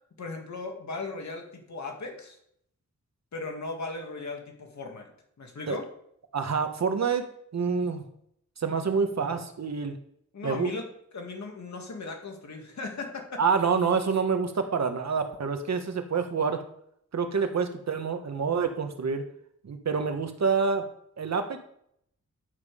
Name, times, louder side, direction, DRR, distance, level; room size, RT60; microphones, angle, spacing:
voice 1, 0.2-2.4 3.3-5.1 5.4-5.9 10.3-10.9 11.1-13.4, left 3 dB, 65° left, 2 dB, 2.3 m, -37 dB
voice 2, 6.3-7.3 7.5-8.0 8.6-10.0 10.4-10.7 13.4-16.6 17.1-19.2 19.6-20.8 21.2-21.6, right 5 dB, 60° right, 6 dB, 1.2 m, -27 dB
10.5 x 7.3 x 5.0 m, 0.69 s
wide cardioid pair, 160°, 31 cm